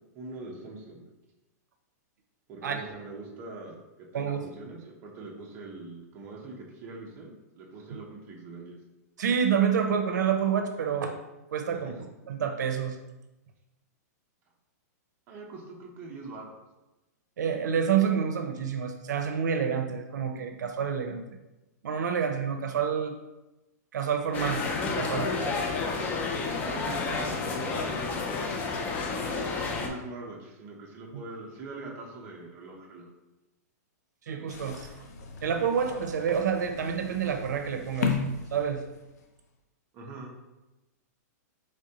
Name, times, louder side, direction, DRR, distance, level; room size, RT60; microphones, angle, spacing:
voice 1, 0.1-1.0 2.5-3.8 4.1-8.8 11.7-11.9 15.3-16.5 26.7-28.6 29.7-33.1 39.9-40.3, right 2 dB, 25° right, -1 dB, 0.7 m, -43 dB
voice 2, 4.1-4.5 9.2-11.1 11.5-11.9 12.3-13.0 17.4-21.2 21.8-23.2 23.9-25.3 31.1-31.2 34.3-34.9 35.4-38.2 38.5-38.8, right 7 dB, 90° right, 6 dB, 0.5 m, -28 dB
sound 1, 24.3-29.9, left 4 dB, 15° left, 0.4 m, -30 dB
sound 2, 34.5-39.2, left 5 dB, 65° left, 0.7 m, -35 dB
5.0 x 3.3 x 2.8 m, 1.0 s
hypercardioid pair, 165°, 9 cm